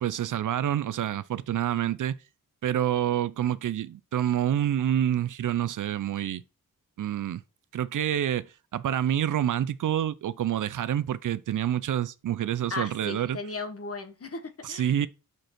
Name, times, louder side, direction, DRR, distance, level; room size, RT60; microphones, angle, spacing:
voice 1, 0.0-2.1 2.6-6.4 7.0-7.4 7.7-13.4 14.6-15.1, right 10 dB, 65° right, 0.5 m, -27 dB
voice 2, 12.7-15.0, left 3 dB, 45° left, 1.3 m, -36 dB
6.0 x 5.3 x 4.3 m
cardioid pair, 70°, 33 cm